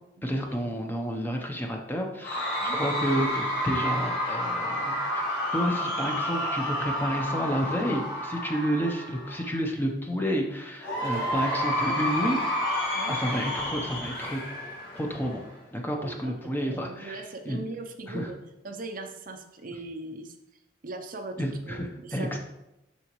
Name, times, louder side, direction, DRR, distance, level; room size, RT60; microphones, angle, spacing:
voice 1, 0.2-5.2 5.5-12.4 13.1-14.4 14.9-15.5 15.7-17.6 18.1-18.3 21.4-22.4, equal, 10° left, 2 dB, 0.8 m, -30 dB
Cheering / Crowd, 2.2-9.5 10.8-15.5, left 1 dB, 60° left, 1.6 m, -30 dB
voice 2, 2.4-2.8 12.9-13.1 16.0-16.4 16.6-18.4 18.6-22.4, right 2 dB, 45° right, 6 dB, 0.6 m, -40 dB
7.0 x 6.1 x 3.1 m, 0.91 s
head